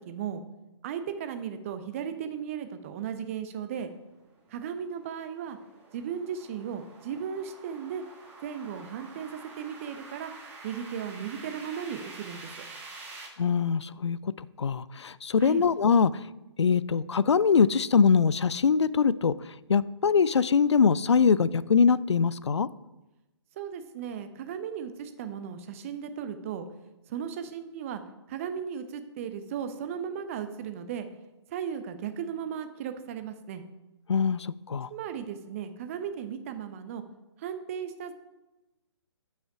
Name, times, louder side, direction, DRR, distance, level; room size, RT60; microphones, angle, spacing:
voice 1, 0.1-0.4 0.8-3.9 4.5-5.6 5.9-8.0 8.4-10.3 10.6-12.7 15.4-15.6 23.6-26.7 27.1-28.0 28.3-31.1 31.5-33.6 34.9-37.0 37.4-38.1, right 8 dB, 30° right, 9 dB, 0.7 m, -36 dB
sound 1, 4.2-13.3, right 3 dB, 15° right, 1.3 m, -48 dB
voice 2, 13.4-16.1 16.6-19.3 19.7-22.7 34.1-34.9, left 6 dB, 70° left, 18 dB, 0.4 m, -23 dB
8.6 x 5.7 x 4.7 m, 1.0 s
figure-of-eight pair, 135°, 15 cm